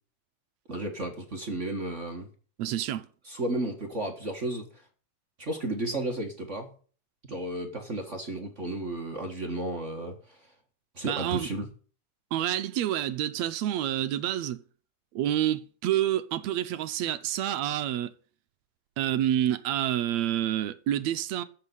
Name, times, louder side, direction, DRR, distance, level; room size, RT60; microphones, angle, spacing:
voice 1, 0.7-2.3 3.2-4.8 5.4-6.7 7.3-10.5 10.9-11.7, right 1 dB, 30° right, 1.4 m, -33 dB
voice 2, 2.6-3.1 11.1-11.5 12.3-14.6 15.2-18.1 19.0-21.4, right 12 dB, 75° right, 1.9 m, -28 dB
14.5 x 5.7 x 9.1 m
omnidirectional pair, 3.4 m